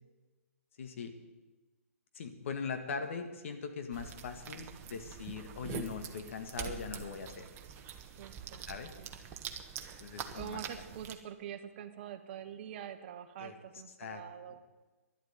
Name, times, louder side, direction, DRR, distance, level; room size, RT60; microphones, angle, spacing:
voice 1, 0.8-1.1 2.1-7.5 8.7-8.9 10.0-10.6 13.4-13.5 14.0-14.2 14.5-14.6, left 5 dB, 60° left, 7 dB, 2.0 m, -41 dB
sound 1, 3.9-11.1, right 8 dB, 25° right, 1.2 m, -45 dB
voice 2, 8.2-8.6 9.0-9.1 10.3-14.6, right 9 dB, 45° right, 9 dB, 1.3 m, -45 dB
11.5 x 8.4 x 9.5 m, 1.2 s
hypercardioid pair, 135°, 8 cm